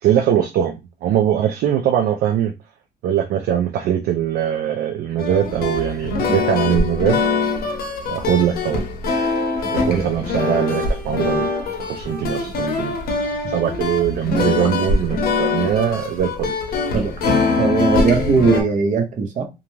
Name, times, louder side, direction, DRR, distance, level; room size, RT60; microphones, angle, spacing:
voice 1, 0.0-2.5 3.0-7.2 8.1-8.9 9.7-11.5 11.8-13.0 13.5-16.6, right 10 dB, 65° right, 0.4 m, -21 dB
sound 1, 5.2-18.6, left 3 dB, 60° left, 0.7 m, -22 dB
voice 2, 17.6-19.5, right 5 dB, 50° right, 0.8 m, -19 dB
2.4 x 2.2 x 3.0 m
cardioid pair, 110°, 17 cm